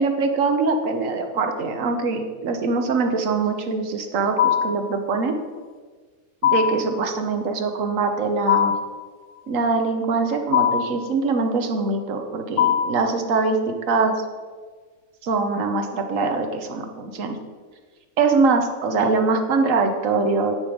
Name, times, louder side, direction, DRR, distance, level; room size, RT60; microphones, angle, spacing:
voice 1, 0.0-5.4 6.4-8.7 9.5-14.1 15.2-17.4 18.2-20.5, right 4 dB, 65° right, 5 dB, 1.2 m, -23 dB
sound 1, 4.4-4.9 6.4-6.9 8.5-9.0 10.5-11.0 12.6-13.1, left 9 dB, 65° left, 1.0 m, -20 dB
9.3 x 5.1 x 4.9 m, 1.5 s
omnidirectional pair, 1.5 m